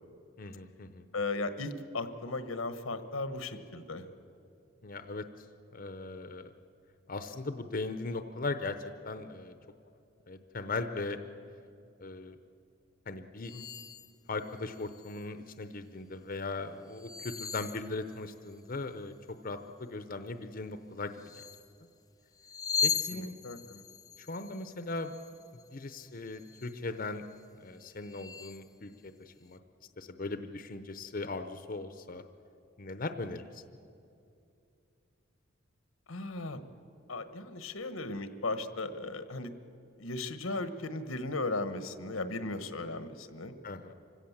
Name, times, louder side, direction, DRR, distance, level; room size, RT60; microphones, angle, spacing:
voice 1, 0.4-1.1 4.8-5.5 5.7-6.5 7.1-9.5 10.3-11.2 12.0-12.4 13.1-13.5 14.3-19.1 19.4-21.5 22.8-23.3 24.2-25.1 25.7-27.3 27.6-29.6 30.0-32.2 32.8-33.8 43.6-43.9, left 3 dB, 45° left, 9 dB, 0.8 m, -39 dB
voice 2, 1.1-4.1 13.5-13.6 23.1-23.8 36.1-36.6 37.1-39.5 40.0-43.5, left 2 dB, 90° left, 10 dB, 1.3 m, -36 dB
sound 1, 13.4-14.1 14.6-15.2 16.9-18.5 21.2-21.7 22.4-25.9 26.3-26.8 27.3-27.4 27.9-28.7, left 7 dB, 20° left, 0.5 m, -38 dB
26.0 x 16.5 x 7.3 m, 2.6 s
head